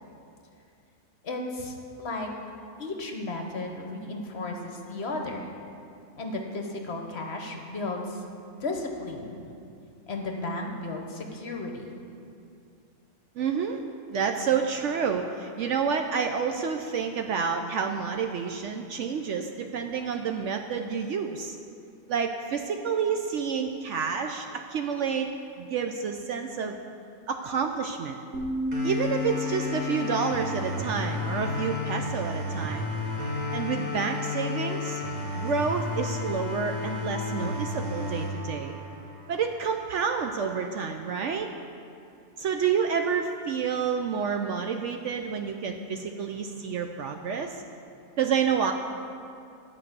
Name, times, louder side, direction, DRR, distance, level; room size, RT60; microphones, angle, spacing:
voice 1, 1.2-2.3 2.8-5.5 6.2-8.2 8.6-9.4 10.1-11.9, left 2 dB, 50° left, 2 dB, 1.1 m, -34 dB
voice 2, 13.4-13.8 14.1-21.6 22.1-25.3 25.6-26.8 27.3-28.2 28.8-32.9 33.5-35.0 35.3-38.8 39.3-41.5 42.4-47.6 48.2-48.7, right 6 dB, 65° right, 5 dB, 0.8 m, -29 dB
sound 1, 28.3-32.2, left 2 dB, 85° right, 1.6 m, -34 dB
sound 2, 28.7-39.7, left 2 dB, 30° right, 1.4 m, -32 dB
11.0 x 5.3 x 8.1 m, 2.5 s
omnidirectional pair, 1.5 m